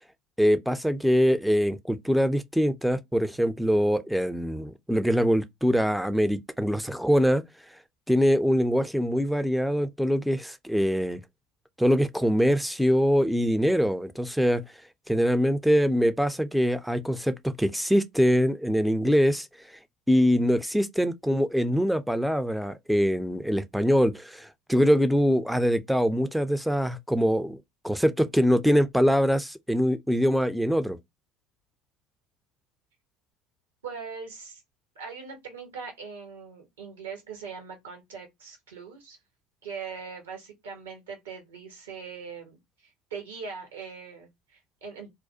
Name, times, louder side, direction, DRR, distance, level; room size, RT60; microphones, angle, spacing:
voice 1, 0.4-7.4 8.1-11.2 11.8-14.6 15.1-19.5 20.1-27.6 27.8-31.0, equal, ahead, 0.4 m, -23 dB
voice 2, 33.8-34.6 35.0-39.2 39.6-42.6 43.1-45.1, right 5 dB, 80° right, 1.0 m, -41 dB
2.4 x 2.1 x 2.6 m
hypercardioid pair, 70°, 0 cm